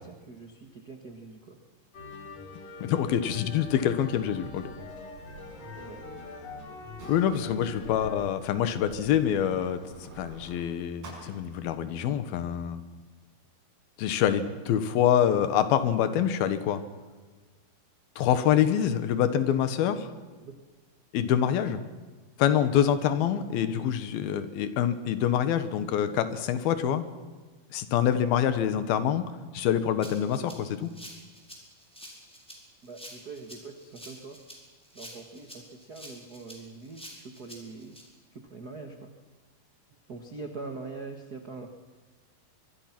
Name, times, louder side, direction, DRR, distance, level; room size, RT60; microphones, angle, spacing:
voice 1, 0.0-1.6 5.7-6.0 20.4-20.5 32.8-34.4 34.9-38.0 38.3-39.1 40.1-41.7, right 3 dB, 55° right, 4 dB, 1.0 m, -43 dB
sound 1, 1.9-8.2, left 3 dB, 45° left, 3.3 m, -44 dB
voice 2, 2.8-4.7 7.1-12.8 14.0-16.8 18.2-20.1 21.1-21.8 22.4-27.1 27.7-30.9, left 9 dB, 75° left, 11 dB, 3.1 m, -26 dB
Sliding door, 3.6-12.2, right 2 dB, 85° right, 7.7 m, -50 dB
Rattle (instrument), 30.0-38.0, equal, ahead, 4.2 m, -48 dB
24.5 x 23.5 x 6.0 m, 1.3 s
omnidirectional pair, 4.5 m